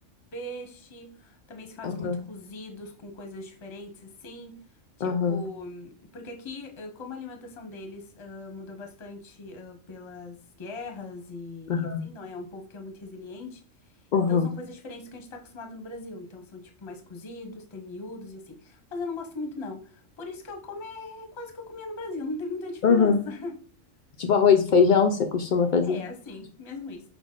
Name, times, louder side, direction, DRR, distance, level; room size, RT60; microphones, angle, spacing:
voice 1, 0.3-4.6 5.0-13.6 14.3-23.6 25.8-27.0, left 2 dB, 30° left, 3 dB, 0.6 m, -39 dB
voice 2, 1.8-2.2 5.0-5.4 11.7-12.0 14.1-14.5 22.8-23.2 24.2-26.0, left 6 dB, 80° left, 6 dB, 0.4 m, -21 dB
5.9 x 2.1 x 3.7 m, 0.41 s
omnidirectional pair, 1.4 m